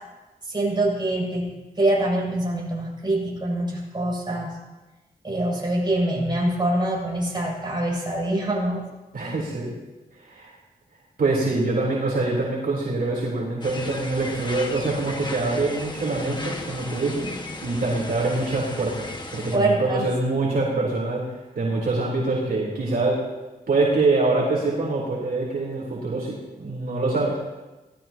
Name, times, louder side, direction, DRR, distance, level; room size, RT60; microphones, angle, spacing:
voice 1, 0.5-4.6 5.2-8.8 9.2-9.4 19.5-20.1, right 1 dB, 30° right, -4 dB, 7.3 m, -25 dB
voice 2, 9.1-9.7 10.2-10.5 11.2-19.1 19.3-21.2 21.6-23.2 23.7-27.3, right 3 dB, 70° right, -4 dB, 3.8 m, -24 dB
sound 1, 13.6-19.6, left 2 dB, 30° left, 1.7 m, -35 dB
25.0 x 18.0 x 3.0 m, 1.1 s
wide cardioid pair, 95°, 16 cm